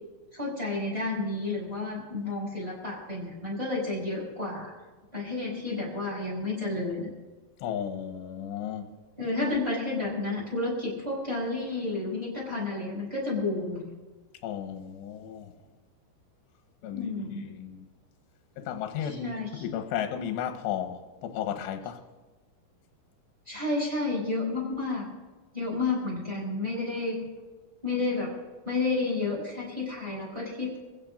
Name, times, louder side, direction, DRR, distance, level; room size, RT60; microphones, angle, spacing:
voice 1, 0.3-4.7 5.1-7.1 9.2-13.9 16.9-17.4 19.0-19.7 23.5-25.1 25.5-27.3 27.8-28.4 28.6-30.8, left 3 dB, 10° right, -4 dB, 6.6 m, -31 dB
voice 2, 7.6-8.9 14.4-15.5 16.8-17.1 17.4-17.9 18.6-22.0, left 9 dB, 75° left, 5 dB, 3.0 m, -34 dB
28.0 x 16.0 x 2.6 m, 1.2 s
omnidirectional pair, 5.5 m